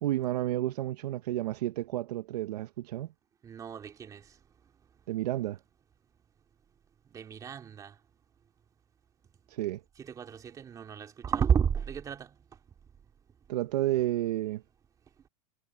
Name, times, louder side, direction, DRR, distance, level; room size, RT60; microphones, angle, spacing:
voice 1, 0.0-3.1 5.1-5.6 9.5-9.8 13.5-14.6, right 15 dB, 80° right, 0.8 m, -31 dB
voice 2, 3.4-4.2 7.1-7.9 10.0-12.3, right 7 dB, 15° right, 2.5 m, -31 dB
supercardioid pair, 160°, 20 cm